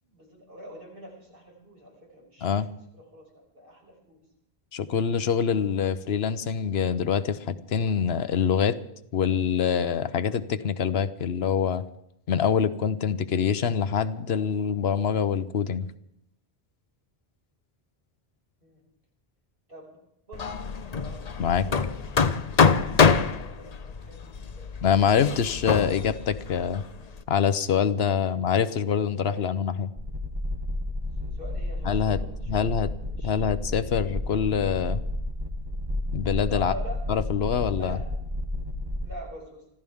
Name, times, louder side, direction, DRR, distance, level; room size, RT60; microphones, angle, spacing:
voice 1, 0.1-2.5 2.9-4.2 18.6-18.8 19.7-20.0 20.3-20.5 20.9-21.2 21.7-22.2 22.5-24.7 27.0-27.1 28.2-28.3 28.7-28.8 29.3-29.5 31.2-33.4 36.5-37.0 37.8-38.0 39.0-39.6, equal, 60° right, -3 dB, 6.1 m, -44 dB
voice 2, 4.7-8.8 9.1-11.8 12.3-15.9 21.4-21.7 24.8-26.8 27.3-29.9 31.8-32.2 32.5-32.9 33.2-35.0 36.1-36.7 37.1-38.0, left 7 dB, 75° left, 13 dB, 1.0 m, -25 dB
Hammer, 20.3-27.2, left 5 dB, 45° left, 0.8 m, -25 dB
sound 1, 30.0-39.1, left 1 dB, 25° right, 1.4 m, -32 dB
25.5 x 15.0 x 3.6 m, 0.75 s
omnidirectional pair, 1.1 m